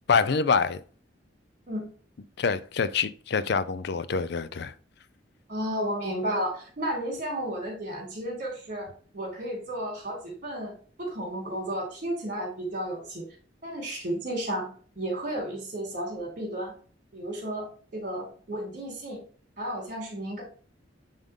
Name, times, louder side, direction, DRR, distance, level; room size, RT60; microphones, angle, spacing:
voice 1, 0.1-0.8 2.4-4.7, left 5 dB, 60° left, 0.5 m, -25 dB
voice 2, 5.5-8.9 9.1-10.7 11.0-13.2 13.6-14.7 14.9-16.7 17.1-17.7 17.9-19.2 19.6-20.4, right 1 dB, 45° right, 3.3 m, -32 dB
9.0 x 3.8 x 3.7 m
head